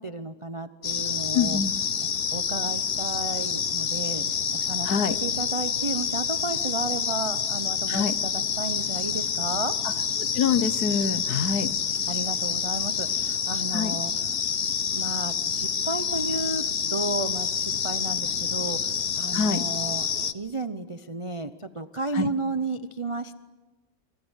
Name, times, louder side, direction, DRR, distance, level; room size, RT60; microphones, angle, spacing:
voice 1, 0.0-1.6 2.3-4.2 4.5-4.9 5.2-9.7 12.1-14.1 14.9-16.6 16.9-20.1 20.3-23.3, right 2 dB, 35° right, 10 dB, 0.4 m, -33 dB
sound 1, 0.8-20.3, left 6 dB, 45° left, 0.9 m, -28 dB
voice 2, 1.3-1.7 4.8-5.2 7.9-8.2 9.8-9.9 10.3-11.7 13.7-14.0 19.3-19.6 22.1-22.3, left 6 dB, 60° left, 13 dB, 1.5 m, -25 dB
28.0 x 23.5 x 8.2 m, 1.3 s
omnidirectional pair, 2.0 m